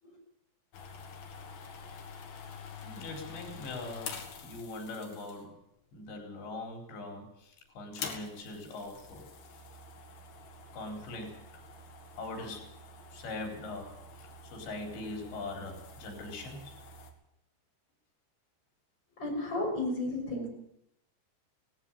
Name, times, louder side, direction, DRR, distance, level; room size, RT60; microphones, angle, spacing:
sound 1, 0.7-5.6 6.4-6.9 7.1-7.2 7.8-17.1, left 5 dB, 65° left, 3.8 m, -47 dB
voice 1, 2.8-5.6 5.9-9.2 10.7-11.6 12.1-12.7 13.1-16.7, left 2 dB, 85° left, 3 dB, 6.5 m, -42 dB
voice 2, 19.2-20.5, left 2 dB, 25° left, 0 dB, 6.8 m, -33 dB
18.0 x 16.0 x 9.1 m, 0.79 s
omnidirectional pair, 5.0 m